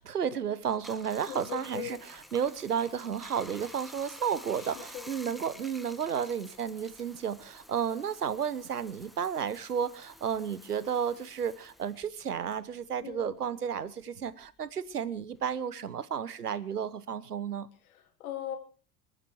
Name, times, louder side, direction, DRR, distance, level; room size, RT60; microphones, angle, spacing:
voice 1, 0.0-2.0 2.3-17.7, right 7 dB, 85° right, 1.0 m, -32 dB
Bathtub (filling or washing), 0.6-13.5 13.8-15.6, equal, ahead, 1.6 m, -51 dB
voice 2, 1.3-2.0 4.5-5.1 13.0-13.4 17.8-18.6, left 11 dB, 65° left, 3.4 m, -40 dB
27.5 x 9.3 x 4.6 m
figure-of-eight pair, 75°, 46 cm